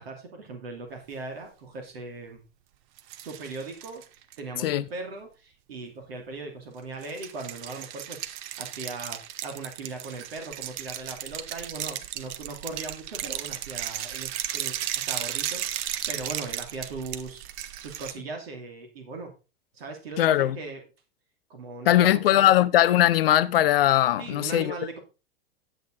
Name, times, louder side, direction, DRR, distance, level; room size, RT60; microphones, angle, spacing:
voice 1, 0.0-2.4 3.2-8.3 8.6-14.8 15.1-19.3 19.7-20.8 21.5-22.5 24.2-25.0, right 3 dB, 70° right, 2.8 m, -39 dB
sound 1, 3.0-4.4 7.0-18.1, right 12 dB, 50° right, 1.0 m, -35 dB
voice 2, 20.2-20.6 21.9-24.7, left 13 dB, 65° left, 0.8 m, -20 dB
10.5 x 8.0 x 3.8 m
figure-of-eight pair, 90°, 31 cm